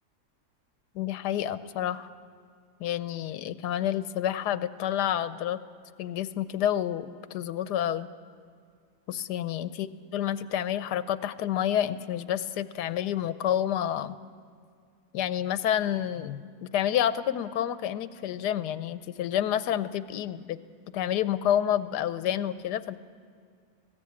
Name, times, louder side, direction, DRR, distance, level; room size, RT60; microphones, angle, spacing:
voice 1, 0.9-2.1 2.8-5.6 6.0-8.1 9.1-14.2 15.1-20.6 20.9-23.0, left 11 dB, 90° left, 14 dB, 1.3 m, -29 dB
19.5 x 16.5 x 8.6 m, 2.1 s
omnidirectional pair, 1.7 m